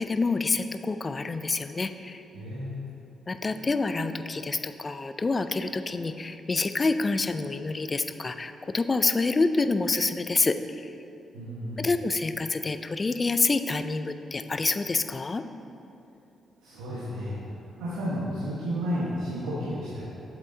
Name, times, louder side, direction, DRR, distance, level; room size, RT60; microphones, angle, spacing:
voice 1, 0.0-2.2 3.3-10.9 11.8-15.4, left 3 dB, 35° left, 10 dB, 0.4 m, -27 dB
voice 2, 2.3-2.9 11.3-11.9 16.6-17.4 17.7-20.0, equal, 80° right, -8 dB, 1.2 m, -32 dB
7.5 x 7.3 x 2.7 m, 2.9 s
hypercardioid pair, 45°, 0 cm